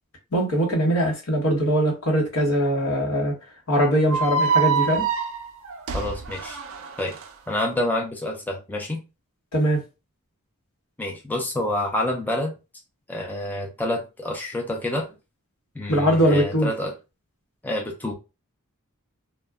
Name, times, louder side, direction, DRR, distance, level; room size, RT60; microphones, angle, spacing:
voice 1, 0.3-3.3 3.7-5.1 9.5-9.8 15.9-16.7, equal, 70° left, 1.0 m, -21 dB
sound 1, 4.1-7.3, right 5 dB, 65° right, 0.5 m, -25 dB
voice 2, 5.9-6.6 7.0-7.2 7.5-9.0 11.0-12.5 13.1-15.1 15.8-16.9 17.6-18.1, left 1 dB, 10° left, 0.4 m, -28 dB
2.2 x 2.1 x 3.5 m
head